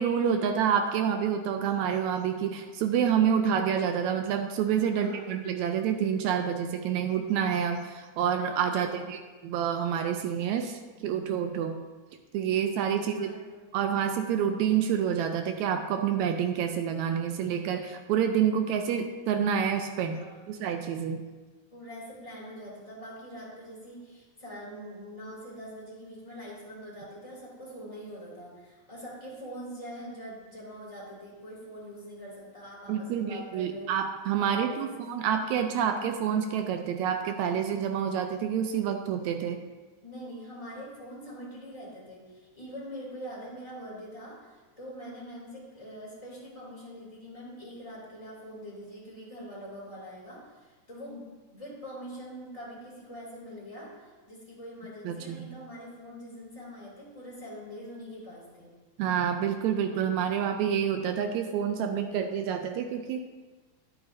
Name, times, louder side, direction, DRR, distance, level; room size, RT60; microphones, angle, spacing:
voice 1, 0.0-11.8 12.3-13.3 13.7-21.2 32.9-39.6 55.1-55.5 59.0-63.2, right 8 dB, 80° right, 6 dB, 1.8 m, -28 dB
voice 2, 4.9-5.4 8.8-9.1 13.0-13.5 20.1-20.6 21.7-33.9 34.5-35.1 40.0-58.7, equal, 10° left, -6 dB, 2.5 m, -44 dB
11.0 x 8.8 x 2.7 m, 1.3 s
omnidirectional pair, 3.5 m